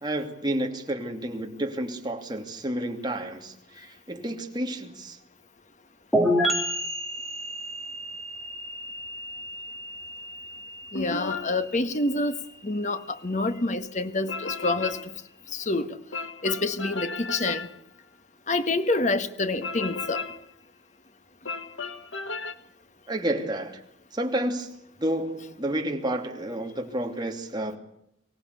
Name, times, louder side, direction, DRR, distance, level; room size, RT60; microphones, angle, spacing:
voice 1, 0.0-5.2 23.1-23.8 24.1-24.7 25.0-27.8, right 1 dB, 20° right, 2.7 m, -30 dB
sound 1, 6.1-13.7, equal, ahead, 4.1 m, -31 dB
sound 2, 10.9-11.6 14.3-15.1 16.1-17.8 19.6-20.5 21.4-22.5, left 4 dB, 70° left, 1.5 m, -34 dB
voice 2, 10.9-12.3 12.6-15.0 15.5-16.0 16.4-17.7 18.5-20.2, left 2 dB, 40° left, 1.4 m, -27 dB
24.0 x 17.5 x 8.3 m
head